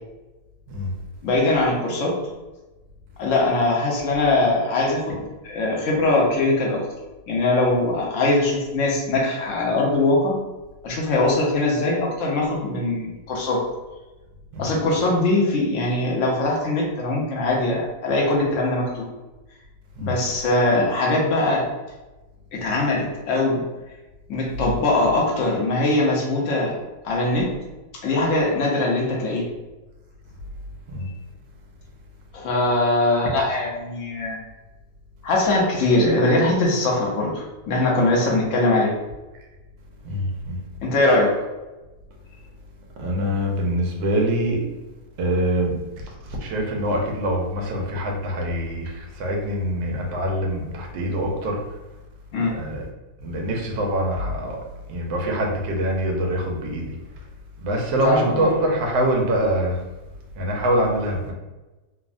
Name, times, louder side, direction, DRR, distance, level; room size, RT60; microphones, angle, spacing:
voice 1, 1.2-2.2 3.2-6.8 7.3-10.3 10.8-13.6 14.6-19.1 20.0-21.7 22.5-23.6 24.3-26.7 27.0-27.5 28.0-29.5 32.3-34.4 35.2-38.9 40.8-41.3 52.3-52.5 58.0-58.5, left 2 dB, 65° left, -2 dB, 0.8 m, -21 dB
voice 2, 40.0-40.6 43.0-44.6 45.2-45.8 46.1-51.6 52.5-52.9 53.2-54.6 54.9-57.0 57.6-59.8 60.4-61.3, right 1 dB, 85° right, 0 dB, 1.3 m, -24 dB
3.4 x 2.0 x 2.4 m, 1.1 s
omnidirectional pair, 2.0 m